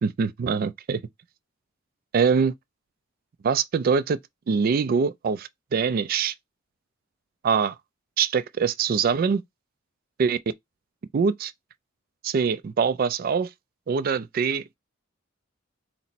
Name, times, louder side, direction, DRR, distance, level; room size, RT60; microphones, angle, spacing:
voice 1, 0.0-1.0 2.1-2.5 3.4-4.2 4.5-6.3 7.4-7.7 8.2-9.4 10.2-10.4 11.1-11.5 12.2-13.5 13.9-14.8, right 6 dB, 45° right, 0.3 m, -23 dB
4.1 x 2.0 x 4.0 m
head